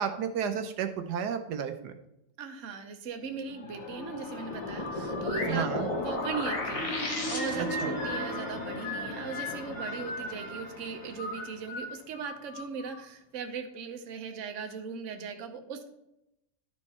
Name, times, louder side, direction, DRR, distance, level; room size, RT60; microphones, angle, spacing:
voice 1, 0.0-1.9 5.5-5.9 7.6-7.9, right 7 dB, 80° right, 7 dB, 1.2 m, -32 dB
voice 2, 2.4-15.9, right 5 dB, 55° right, 5 dB, 1.2 m, -39 dB
sound 1, 3.2-12.0, left 2 dB, 45° left, 1.3 m, -39 dB
sound 2, 4.3-7.9, left 2 dB, 25° left, 0.8 m, -35 dB
sound 3, 4.7-5.5 6.2-8.3 8.8-10.6 11.2-13.0, left 1 dB, 70° left, 2.3 m, -38 dB
11.5 x 4.5 x 4.3 m, 0.84 s
omnidirectional pair, 1.8 m